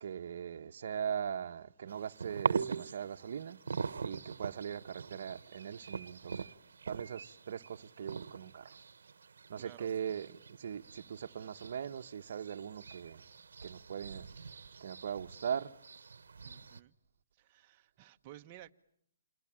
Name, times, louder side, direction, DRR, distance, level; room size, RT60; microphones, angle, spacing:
voice 1, 0.0-3.6 4.0-6.6 6.8-8.8 9.5-15.8, right 8 dB, 60° right, 1.1 m, -40 dB
sound 1, 1.9-16.8, right 5 dB, 85° right, 1.1 m, -42 dB
voice 2, 9.6-9.9 16.4-16.9 17.3-18.7, right 13 dB, 30° right, 1.2 m, -54 dB
28.5 x 23.0 x 8.8 m
hypercardioid pair, 155°, 0 cm